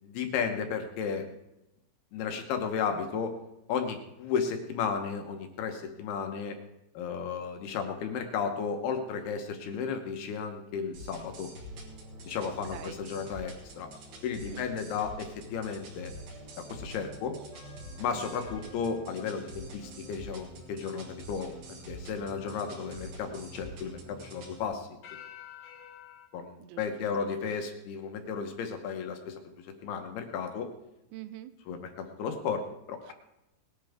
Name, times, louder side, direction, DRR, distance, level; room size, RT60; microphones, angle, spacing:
voice 1, 0.0-1.2 2.1-3.3 3.7-6.6 6.9-11.5 12.3-13.9 14.2-16.1 16.6-17.4 18.0-21.6 21.9-25.0 26.3-29.4 29.8-30.7 31.7-33.1, left 6 dB, 70° left, 5 dB, 2.5 m, -34 dB
sound 1, 10.9-24.6, right 1 dB, 60° right, 4.6 m, -46 dB
voice 2, 12.4-13.0 14.4-14.6 18.1-18.3 26.6-27.5 31.1-31.5 33.0-33.1, right 14 dB, 85° right, 12 dB, 3.4 m, -46 dB
sound 2, 17.5-20.4 25.0-26.3, left 9 dB, 55° left, 2.5 m, -51 dB
19.5 x 11.5 x 3.5 m, 0.90 s
omnidirectional pair, 5.7 m